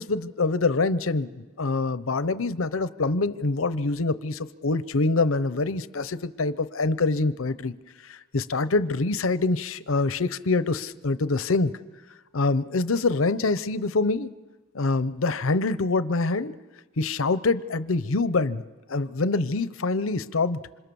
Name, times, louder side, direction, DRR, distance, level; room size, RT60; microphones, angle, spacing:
voice 1, 0.0-7.7 8.0-11.7 12.3-14.3 14.7-16.6 17.0-18.6 18.9-20.6, left 3 dB, 85° left, 14 dB, 0.8 m, -25 dB
28.0 x 26.0 x 7.0 m, 1.2 s
head